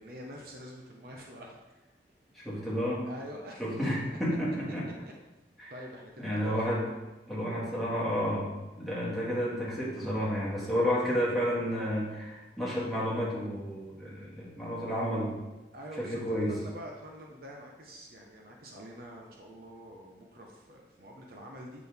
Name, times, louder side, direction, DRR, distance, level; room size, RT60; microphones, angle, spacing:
voice 1, 0.0-1.6 3.0-3.6 4.1-4.2 5.0-5.1 5.7-6.7 15.7-21.9, equal, 55° right, 0 dB, 0.9 m, -46 dB
voice 2, 2.3-3.0 3.6-4.9 5.6-5.7 6.2-6.9 7.3-15.3 16.0-16.5, equal, ahead, -8 dB, 2.0 m, -31 dB
7.6 x 6.1 x 3.6 m, 1.1 s
head